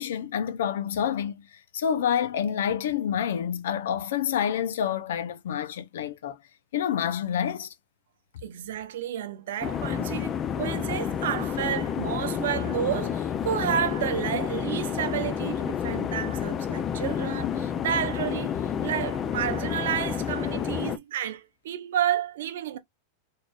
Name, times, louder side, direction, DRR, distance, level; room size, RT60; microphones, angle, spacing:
voice 1, 0.0-1.5 1.7-6.4 6.7-7.7, left 8 dB, 85° left, 0.6 m, -28 dB
voice 2, 8.4-22.8, right 10 dB, 80° right, 0.8 m, -31 dB
sound 1, 9.6-21.0, left 8 dB, 25° left, 0.4 m, -30 dB
4.2 x 3.2 x 2.4 m
supercardioid pair, 150°, 0 cm